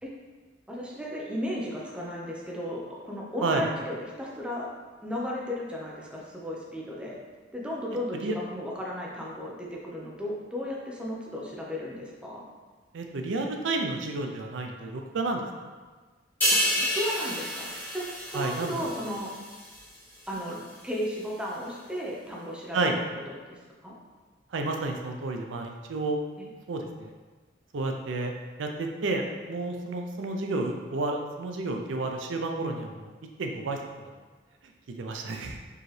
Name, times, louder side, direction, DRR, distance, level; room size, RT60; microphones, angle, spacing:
voice 1, 0.7-4.7 5.0-7.2 7.5-12.4 16.5-17.7 17.9-19.3 20.3-22.9 23.3-24.0 26.4-26.5, equal, 5° right, -4 dB, 0.6 m, -35 dB
voice 2, 12.9-15.4 18.3-18.8 22.7-23.0 24.5-26.2 26.7-27.1 27.7-28.3 28.6-33.1 33.4-33.8 35.0-35.6, right 3 dB, 80° right, 3 dB, 0.5 m, -30 dB
sound 1, 16.4-19.9 20.3-20.5, equal, 10° left, 1.3 m, -29 dB
4.6 x 2.9 x 3.2 m, 1.4 s
head